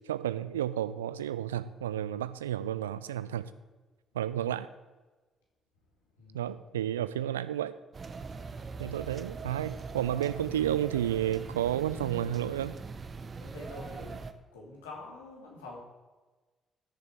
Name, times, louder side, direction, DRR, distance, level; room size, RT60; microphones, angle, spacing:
voice 1, 0.1-3.5 4.1-4.7 6.3-7.7 8.8-12.8, right 11 dB, 85° right, 15 dB, 0.3 m, -31 dB
voice 2, 6.2-6.5 13.4-14.2 14.5-15.8, left 3 dB, 80° left, -2 dB, 2.4 m, -46 dB
sound 1, 7.9-14.3, right 4 dB, 40° right, 0.8 m, -41 dB
14.0 x 6.9 x 4.6 m, 1.2 s
figure-of-eight pair, 45°, 0 cm